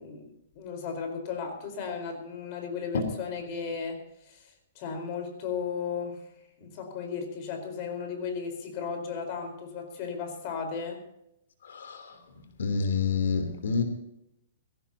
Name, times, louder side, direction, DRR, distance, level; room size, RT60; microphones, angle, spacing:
voice 1, 0.0-4.5 4.7-6.2 6.6-11.0, left 6 dB, 35° left, 5 dB, 4.4 m, -35 dB
voice 2, 11.7-12.0 12.6-13.8, left 5 dB, 80° left, 7 dB, 3.3 m, -27 dB
21.5 x 17.0 x 2.8 m, 0.81 s
hypercardioid pair, 160°, 0 cm